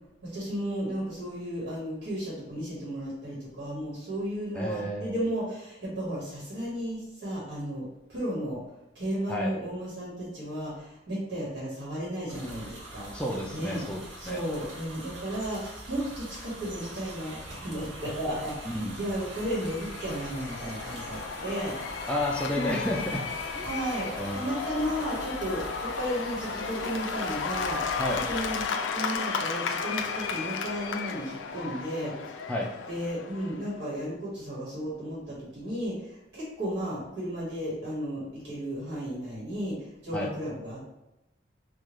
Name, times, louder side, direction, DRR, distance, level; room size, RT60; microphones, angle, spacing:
voice 1, 0.2-8.6 8.9-13.1 13.5-13.8 14.2-21.8 22.5-22.8 23.6-28.0 28.3-32.4 32.9-40.9, equal, 70° right, -7 dB, 1.5 m, -34 dB
voice 2, 4.5-5.1 9.3-9.5 13.1-14.4 18.7-19.0 22.1-23.2 23.5-23.7 24.2-24.4 28.0-28.2 32.5-32.7 40.1-40.3, left 1 dB, 5° left, -2 dB, 0.3 m, -31 dB
sound 1, 12.3-28.7, right 1 dB, 85° right, 1.0 m, -43 dB
Cheering / Applause / Crowd, 19.1-33.8, left 5 dB, 90° left, 0.3 m, -34 dB
3.6 x 2.3 x 3.1 m, 0.93 s
head